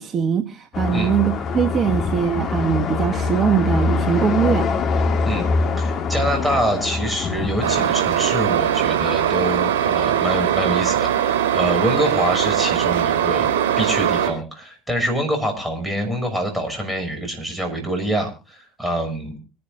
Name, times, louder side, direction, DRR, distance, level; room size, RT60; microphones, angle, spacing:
voice 1, 0.0-4.7, right 7 dB, 40° right, 8 dB, 1.2 m, -21 dB
sound 1, 0.7-7.9, left 4 dB, 45° left, 1.6 m, -23 dB
voice 2, 5.8-13.5 13.8-19.4, right 1 dB, 5° right, 3 dB, 6.2 m, -25 dB
sound 2, 7.6-14.3, right 10 dB, 65° right, 4.4 m, -20 dB
25.0 x 11.0 x 2.5 m, 0.33 s
hypercardioid pair, 70°, 0 cm